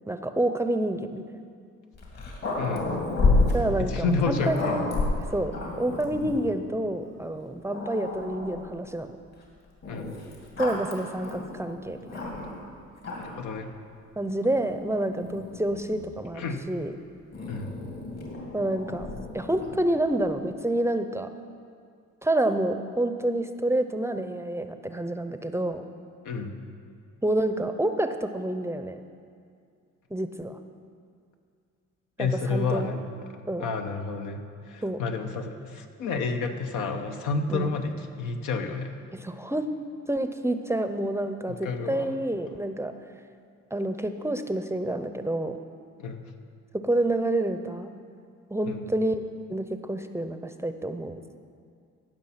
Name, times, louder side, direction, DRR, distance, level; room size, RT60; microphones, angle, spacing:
voice 1, 0.1-1.2 3.5-4.8 5.3-5.5 5.8-9.1 10.6-12.2 14.2-16.9 18.5-19.1 19.3-21.3 22.2-25.8 27.2-29.0 30.1-30.6 32.2-32.9 33.5-33.7 34.8-35.0 37.5-37.7 39.1-39.7 40.1-42.9 43.7-45.6 46.8-47.9 48.5-49.2 49.5-51.2, right 1 dB, 10° right, 8 dB, 0.5 m, -28 dB
Growling, 1.9-6.5 7.2-7.3 7.7-8.7 9.8-12.6 13.0-13.5 14.4-16.2 17.3-19.9, left 3 dB, 60° left, 2.6 m, -31 dB
voice 2, 2.6-2.9 3.8-4.9 9.9-10.1 13.2-13.7 16.3-16.6 17.5-17.7 26.2-26.5 32.2-33.0 33.6-39.0 41.5-42.2 46.0-46.2 48.6-48.8, left 4 dB, 85° left, 5 dB, 1.0 m, -30 dB
15.5 x 6.0 x 5.7 m, 2.3 s
cardioid pair, 90°, 30 cm